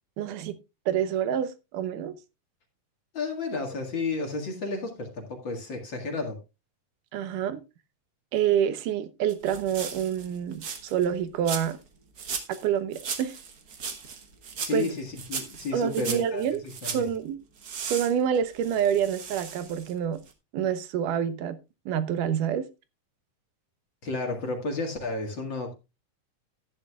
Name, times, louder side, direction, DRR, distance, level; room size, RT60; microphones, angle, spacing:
voice 1, 0.2-0.6 0.9-2.1 7.1-7.6 8.3-11.8 12.6-13.4 14.7-14.9 15.7-16.6 16.9-17.4 17.9-20.2 20.5-21.6 21.9-22.7, right 9 dB, 75° right, 2.5 m, -27 dB
voice 2, 3.1-6.4 14.6-17.0 24.0-25.7, left 3 dB, 40° left, 2.2 m, -32 dB
sound 1, 9.3-11.1 11.4-11.9 12.2-12.7 12.9-17.1 17.6-20.0 20.3-20.4, right 6 dB, 60° right, 1.0 m, -37 dB
13.0 x 10.5 x 2.4 m
omnidirectional pair, 3.7 m